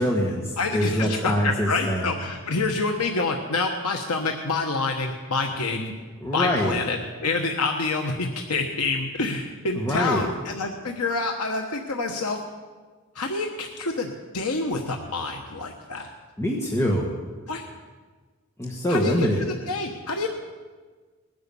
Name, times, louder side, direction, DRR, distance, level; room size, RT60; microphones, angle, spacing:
voice 1, 0.0-2.1 5.7-5.9 6.2-6.8 9.7-10.2 16.4-17.1 18.6-19.5, equal, 10° left, -2 dB, 1.5 m, -24 dB
voice 2, 0.6-5.8 6.3-12.4 13.1-16.1 17.5-17.7 18.9-20.3, left 3 dB, 90° left, 3 dB, 1.2 m, -27 dB
19.5 x 10.5 x 7.0 m, 1.4 s
head